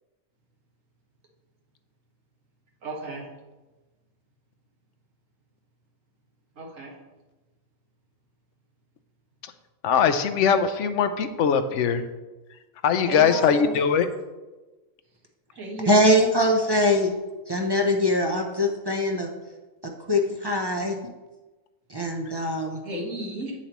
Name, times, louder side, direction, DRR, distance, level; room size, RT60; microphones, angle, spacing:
voice 1, 2.8-3.3 6.6-6.9 13.1-13.7 15.6-16.1 22.8-23.5, right 2 dB, 70° right, 0 dB, 1.8 m, -33 dB
voice 2, 9.8-12.0 12.8-14.1, left 7 dB, 70° left, 9 dB, 0.9 m, -21 dB
voice 3, 15.9-17.1 17.5-19.3 19.8-21.0 21.9-22.8, left 1 dB, 30° right, 2 dB, 0.5 m, -22 dB
8.1 x 7.1 x 3.0 m, 1.1 s
omnidirectional pair, 1.4 m